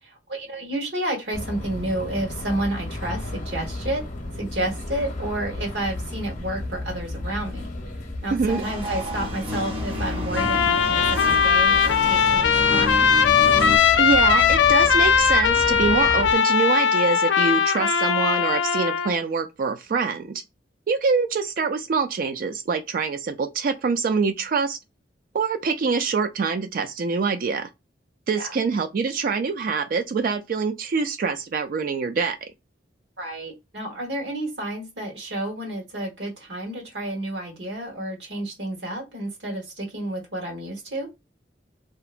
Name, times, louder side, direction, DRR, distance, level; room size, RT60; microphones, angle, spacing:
voice 1, 0.0-4.0 4.3-7.7 8.2-13.1 28.4-28.5 33.2-41.1, right 1 dB, 80° right, 1.3 m, -30 dB
sound 1, 1.3-16.3, left 1 dB, 45° left, 0.7 m, -33 dB
voice 2, 8.3-8.6 14.0-20.4 20.9-24.8 25.3-27.7 28.3-32.4, right 5 dB, 50° right, 0.3 m, -25 dB
sound 2, 8.5-13.8, left 1 dB, 30° right, 0.7 m, -31 dB
Trumpet, 10.4-19.1, left 7 dB, 85° left, 0.4 m, -19 dB
2.8 x 2.1 x 2.4 m
head